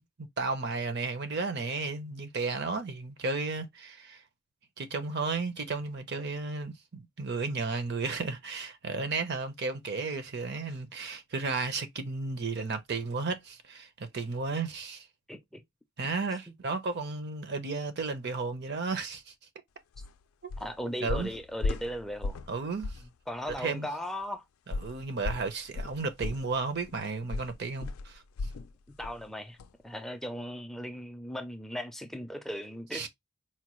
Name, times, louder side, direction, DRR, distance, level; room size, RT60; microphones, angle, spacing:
voice 1, 0.2-4.2 4.8-15.1 16.0-19.3 20.4-20.5 21.0-21.3 22.5-23.0 23.6-23.9 24.7-28.2 32.9-33.1, right 4 dB, 55° right, 0.7 m, -33 dB
voice 2, 15.3-15.6 20.6-22.4 23.3-24.4 29.0-29.6 29.8-33.1, equal, ahead, 0.4 m, -37 dB
sound 1, 19.9-20.1 20.5-20.7 21.1-22.5 22.8-23.1 23.5-23.6 24.7-28.7 29.0-29.2 29.6-29.7, left 3 dB, 90° left, 0.4 m, -35 dB
4.3 x 2.2 x 3.0 m
head